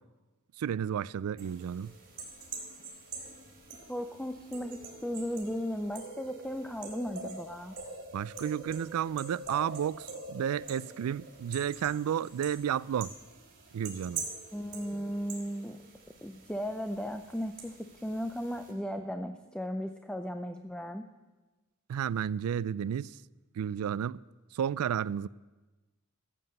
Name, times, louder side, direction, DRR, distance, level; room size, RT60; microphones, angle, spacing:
voice 1, 0.6-1.9 8.1-13.1 13.7-14.3 21.9-23.1 23.6-24.2 24.5-25.3, right 9 dB, 85° right, 0.3 m, -32 dB
sound 1, 1.4-18.7, right 4 dB, 45° right, 3.5 m, -45 dB
voice 2, 3.9-7.8 14.5-15.8 16.2-21.1, equal, 5° left, 0.4 m, -36 dB
14.5 x 7.6 x 7.8 m
head